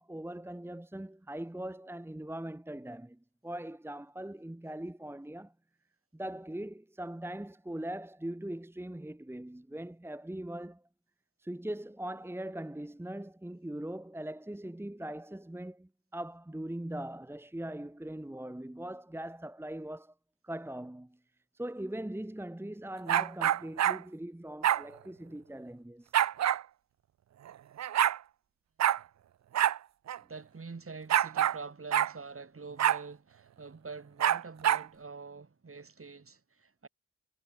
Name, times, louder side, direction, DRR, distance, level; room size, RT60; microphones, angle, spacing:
voice 1, 0.0-5.5 6.1-10.8 11.4-20.1 20.4-21.2 21.5-26.1, right 1 dB, 10° right, 1.2 m, -41 dB
sound 1, 23.1-24.0 24.6-24.8 26.1-26.6 27.5-27.6 27.8-28.2 28.8-29.0 29.5-29.8 30.1-30.2 31.1-31.6 31.9-32.1 32.8-33.0 34.2-34.9, right 11 dB, 65° right, 0.6 m, -26 dB
voice 2, 30.3-36.9, right 4 dB, 50° right, 4.8 m, -45 dB
supercardioid pair, 40°, 29 cm